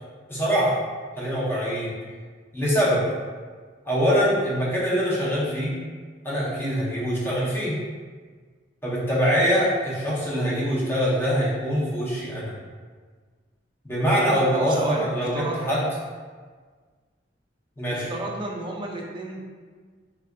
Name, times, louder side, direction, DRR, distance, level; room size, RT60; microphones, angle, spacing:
voice 1, 0.3-0.8 1.2-1.9 2.5-3.0 3.8-5.8 6.2-7.8 8.8-12.5 13.8-15.8 17.8-18.1, equal, 15° left, -8 dB, 0.7 m, -23 dB
voice 2, 14.5-15.1 15.3-15.6 17.9-19.4, right 2 dB, 25° right, -1 dB, 0.4 m, -32 dB
3.4 x 2.4 x 2.2 m, 1.5 s
head